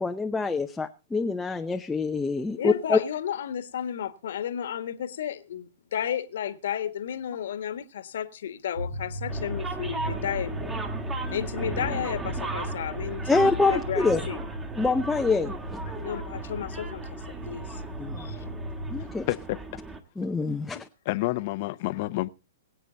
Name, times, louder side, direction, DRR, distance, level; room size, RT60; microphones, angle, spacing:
voice 1, 0.0-3.0 13.3-14.2 14.8-15.8 18.0-18.3 18.9-19.3 20.2-20.9, left 3 dB, 10° left, 0.7 m, -25 dB
voice 2, 2.6-10.7 11.3-14.4 16.0-17.8 18.2-18.4 20.7-20.8, left 9 dB, 65° left, 1.5 m, -33 dB
sound 1, 8.8-19.1, equal, 65° right, 2.3 m, -36 dB
sound 2, 9.3-20.0, right 3 dB, 15° right, 1.9 m, -37 dB
voice 3, 15.9-16.2 18.3-18.4 19.0-19.6 21.1-22.3, left 19 dB, 45° left, 0.8 m, -30 dB
22.5 x 8.1 x 4.0 m
hypercardioid pair, 120°, 0 cm